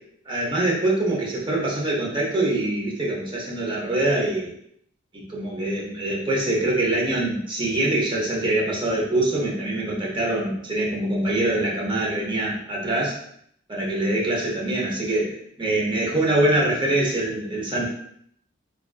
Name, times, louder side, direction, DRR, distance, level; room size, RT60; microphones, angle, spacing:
voice 1, 0.3-4.5 5.1-13.2 13.7-17.9, right 1 dB, 25° right, -3 dB, 0.7 m, -24 dB
3.5 x 2.4 x 2.3 m, 0.68 s
head